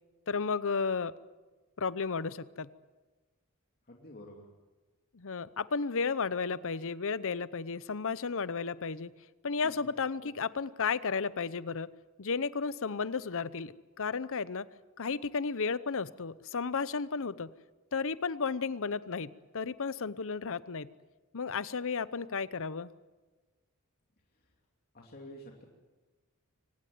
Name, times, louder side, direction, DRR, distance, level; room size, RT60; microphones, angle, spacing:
voice 1, 0.3-1.1 1.8-2.7 5.1-9.1 9.4-11.9 12.2-14.7 15.0-17.5 17.9-20.9 21.3-22.9, left 5 dB, 65° left, 17 dB, 0.8 m, -33 dB
voice 2, 3.9-4.5 9.6-9.9 10.2-10.3 24.9-25.6, equal, 45° left, 0 dB, 2.8 m, -49 dB
24.5 x 18.0 x 9.4 m, 1.2 s
head